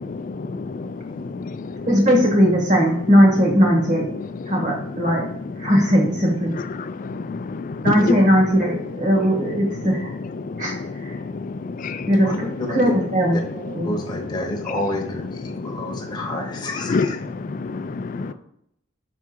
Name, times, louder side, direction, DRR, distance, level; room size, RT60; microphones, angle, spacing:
voice 1, 0.4-0.9 1.4-1.5 6.8-7.7 11.8-12.1 16.9-17.1 17.5-18.3, left 4 dB, 40° left, 0.3 m, -27 dB
voice 2, 1.9-4.1 4.5-5.3 5.6-6.5 7.8-10.1 10.6-11.1 12.1-13.9, equal, 35° right, 1.6 m, -19 dB
voice 3, 12.2-12.9 13.8-17.2, left 1 dB, 20° left, 0.9 m, -30 dB
6.0 x 3.5 x 4.4 m
head